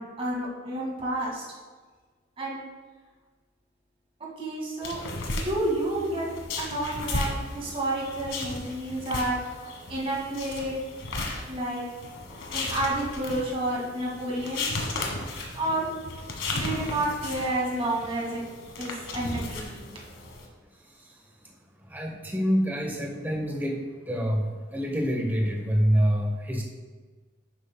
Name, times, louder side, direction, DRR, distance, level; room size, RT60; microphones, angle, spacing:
voice 1, 0.0-1.4 2.4-2.6 4.4-5.0 5.3-6.3 6.6-9.4 9.9-10.8 11.5-11.8 12.5-14.7 15.5-15.9 16.5-18.4 18.8-19.9, right 1 dB, 30° right, -4 dB, 2.0 m, -30 dB
sound 1, 4.8-20.5, left 2 dB, 75° left, 1.4 m, -35 dB
voice 2, 21.9-23.8 24.1-26.6, equal, 10° right, -1 dB, 0.9 m, -26 dB
11.0 x 8.1 x 2.2 m, 1.4 s
head